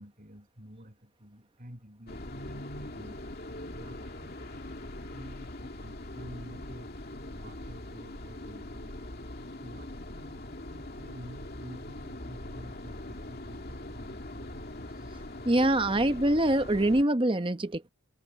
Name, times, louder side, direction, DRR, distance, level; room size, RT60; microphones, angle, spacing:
voice 1, 0.0-6.9 7.3-9.0 9.6-14.7, equal, 40° right, 8.0 m, -50 dB
sound 1, 2.1-17.0, left 1 dB, 45° left, 2.6 m, -42 dB
voice 2, 15.4-17.9, right 1 dB, 25° right, 0.9 m, -24 dB
head